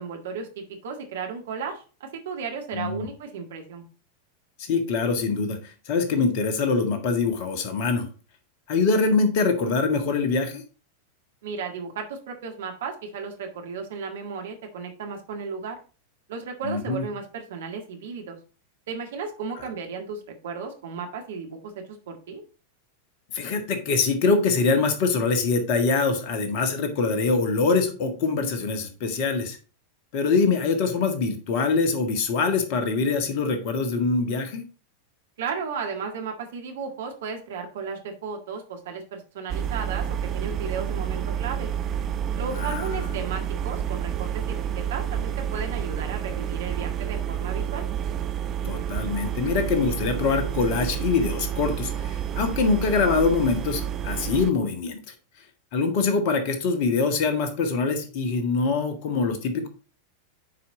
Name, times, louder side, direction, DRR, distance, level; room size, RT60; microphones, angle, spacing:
voice 1, 0.0-3.8 11.4-15.8 16.3-18.4 18.9-22.4 35.4-40.1 40.3-41.7 42.4-47.8, right 5 dB, 60° right, 4 dB, 1.8 m, -34 dB
voice 2, 2.7-3.1 4.6-8.1 8.7-10.6 16.6-17.0 23.3-29.6 30.1-34.6 42.5-43.1 48.6-55.0 55.7-59.7, left 4 dB, 45° left, 6 dB, 1.7 m, -24 dB
sound 1, 39.5-54.5, right 9 dB, 30° right, 0.7 m, -29 dB
9.3 x 4.9 x 3.9 m, 0.36 s
figure-of-eight pair, 90°, 0 cm